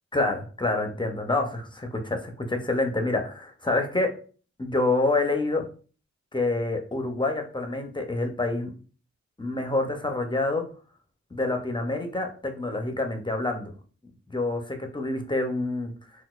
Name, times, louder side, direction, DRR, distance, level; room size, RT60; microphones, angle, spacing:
voice 1, 0.1-4.1 4.6-5.7 6.3-8.7 9.4-10.6 11.3-13.7 14.3-15.9, left 2 dB, 15° left, 4 dB, 0.5 m, -27 dB
3.9 x 2.2 x 2.3 m, 0.39 s
wide cardioid pair, 140°, 29 cm